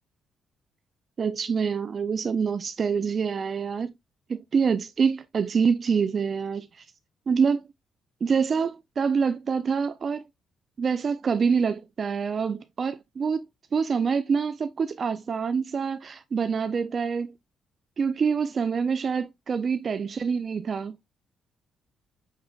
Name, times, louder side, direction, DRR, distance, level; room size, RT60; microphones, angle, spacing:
voice 1, 1.2-3.9 4.3-6.9 7.3-7.6 8.2-10.2 10.8-13.5 13.7-17.3 18.0-21.0, right 6 dB, 45° right, 0.4 m, -26 dB
6.5 x 3.6 x 2.3 m
cardioid pair, 90°, 0 cm